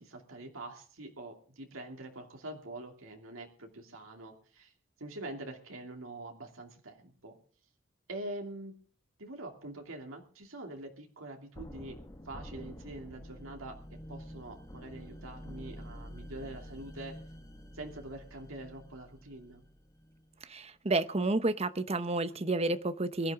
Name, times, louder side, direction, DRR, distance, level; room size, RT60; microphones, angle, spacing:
voice 1, 0.0-4.7 5.0-7.4 8.1-8.8 9.2-12.0 12.2-17.2 17.7-19.6, right 2 dB, 85° right, 2 dB, 2.8 m, -45 dB
sound 1, 11.5-20.4, equal, 15° left, 1.6 m, -48 dB
voice 2, 20.5-23.3, right 2 dB, 30° right, 12 dB, 0.9 m, -30 dB
23.0 x 12.0 x 3.7 m, 0.43 s
head